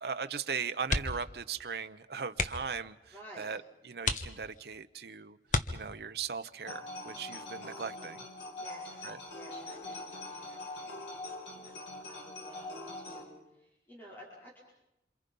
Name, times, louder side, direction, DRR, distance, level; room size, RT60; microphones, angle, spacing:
voice 1, 0.0-5.4 5.7-8.2 9.0-9.2, right 6 dB, 65° right, 10 dB, 0.8 m, -38 dB
sound 1, 0.8-1.4 1.7-1.8 2.3-2.8 3.4-3.5 4.0-4.8 5.5-6.2 7.8-8.1 8.5-8.6, left 3 dB, 45° left, 1.3 m, -33 dB
voice 2, 3.1-3.5 8.6-9.0 9.3-14.6, right 1 dB, 10° left, -5 dB, 5.0 m, -53 dB
sound 2, 6.6-13.2, left 2 dB, 85° left, 4.4 m, -43 dB
27.5 x 27.5 x 5.5 m, 0.84 s
head